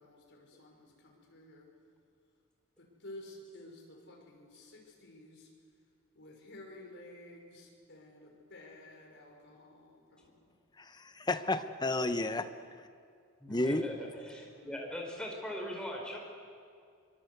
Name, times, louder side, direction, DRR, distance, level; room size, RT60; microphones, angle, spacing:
voice 1, 0.0-1.7 2.8-5.5 6.1-10.4 12.0-12.4 13.9-14.8, left 1 dB, 50° left, 5.5 m, -53 dB
voice 2, 10.8-12.5 13.5-13.8, left 2 dB, 20° left, 1.0 m, -31 dB
voice 3, 13.4-16.2, equal, 5° left, 4.5 m, -40 dB
24.5 x 23.0 x 8.1 m
head